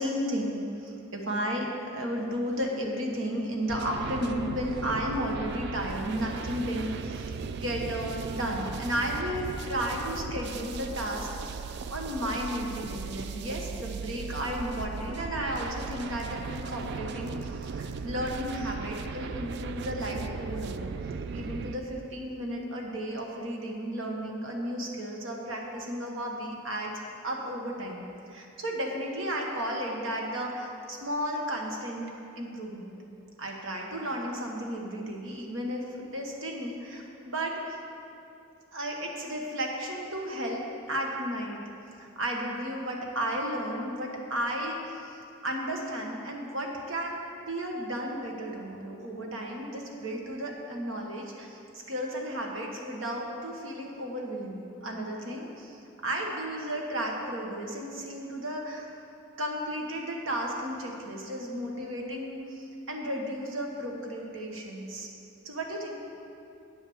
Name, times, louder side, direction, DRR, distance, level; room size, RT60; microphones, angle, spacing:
voice 1, 0.0-11.6 11.9-20.9 21.3-26.9 27.2-32.1 32.4-33.0 33.4-37.8 38.7-40.6 40.9-41.6 42.0-51.6 51.9-58.9 59.4-65.1 65.4-66.0, equal, 70° right, 0 dB, 1.3 m, -33 dB
sound 1, 3.7-21.8, right 5 dB, 55° right, 0.3 m, -37 dB
9.1 x 5.6 x 6.9 m, 2.6 s
head